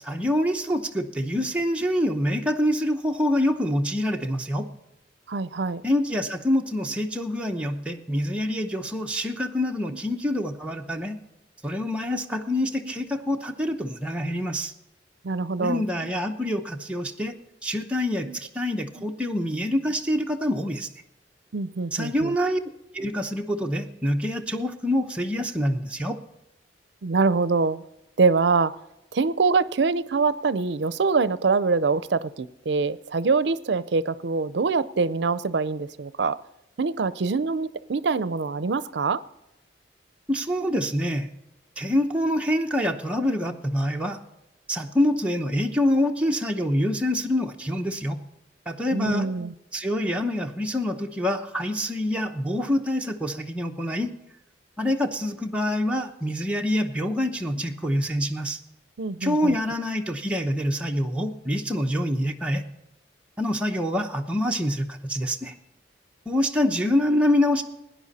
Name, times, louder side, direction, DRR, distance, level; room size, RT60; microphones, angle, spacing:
voice 1, 0.0-4.7 5.8-11.2 11.6-14.7 15.6-17.3 17.6-20.9 21.9-22.6 22.9-26.2 40.3-41.3 41.8-44.2 44.7-48.2 48.7-49.3 49.7-54.1 54.8-58.6 59.2-62.7 63.4-65.5 66.3-67.6, left 1 dB, 5° right, 1 dB, 0.8 m, -26 dB
voice 2, 5.3-5.8 9.9-10.0 12.8-12.9 15.2-15.8 18.3-18.4 21.5-22.3 27.0-27.8 28.2-28.7 29.1-36.4 36.8-39.2 48.9-49.5 59.0-59.6, right 4 dB, 70° right, 17 dB, 0.5 m, -24 dB
17.5 x 10.0 x 4.2 m, 0.91 s
head